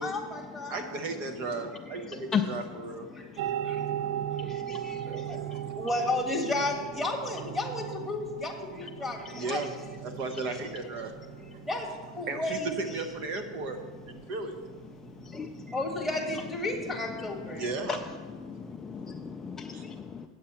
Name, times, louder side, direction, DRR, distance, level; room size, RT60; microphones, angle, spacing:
voice 1, 0.0-0.9 5.1-5.4 5.8-9.2 9.4-9.6 11.7-11.8 12.2-13.1 15.7-17.7, left 2 dB, ahead, -2 dB, 1.6 m, -32 dB
voice 2, 0.7-3.1 5.5-5.6 9.3-9.7 10.0-11.1 11.5-11.6 12.3-13.8 14.1-14.5 17.5-18.0 19.7-19.8, right 3 dB, 45° right, 7 dB, 0.9 m, -35 dB
voice 3, 1.6-5.9 8.7-11.7 13.9-14.4 14.8-15.8 16.3-16.4 16.7-20.3, left 6 dB, 15° left, 5 dB, 0.4 m, -39 dB
sound 1, 3.4-18.1, right 11 dB, 60° right, 0.3 m, -39 dB
8.5 x 7.6 x 5.8 m, 1.5 s
supercardioid pair, 140°, 3 cm